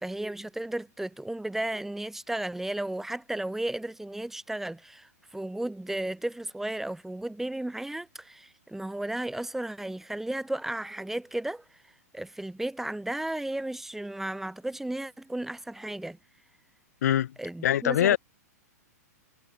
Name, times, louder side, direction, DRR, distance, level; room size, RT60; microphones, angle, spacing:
voice 1, 0.0-11.6 12.1-16.2 17.4-18.2, right 1 dB, 5° right, 1.5 m, -34 dB
voice 2, 17.0-17.3 17.6-18.2, left 11 dB, 70° left, 2.4 m, -23 dB
hypercardioid pair, 125°, 9 cm